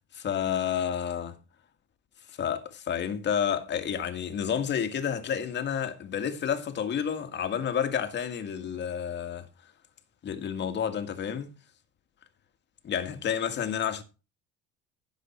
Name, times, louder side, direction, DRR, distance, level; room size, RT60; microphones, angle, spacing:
voice 1, 0.1-1.4 2.4-9.5 10.2-11.5 12.8-14.0, left 8 dB, 35° left, 1.9 m, -30 dB
15.5 x 7.6 x 4.4 m
cardioid pair, 140°, 29 cm